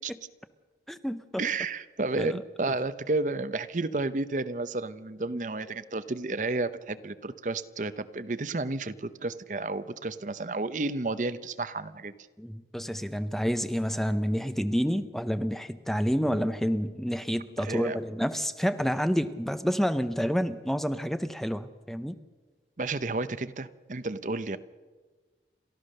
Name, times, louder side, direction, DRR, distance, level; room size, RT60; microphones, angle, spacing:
voice 1, 0.9-1.4 2.2-2.4 12.4-22.1, equal, ahead, 11 dB, 0.6 m, -29 dB
voice 2, 1.4-12.1 17.6-18.0 22.8-24.6, right 3 dB, 45° right, 13 dB, 0.7 m, -31 dB
29.5 x 13.5 x 6.6 m, 1.3 s
head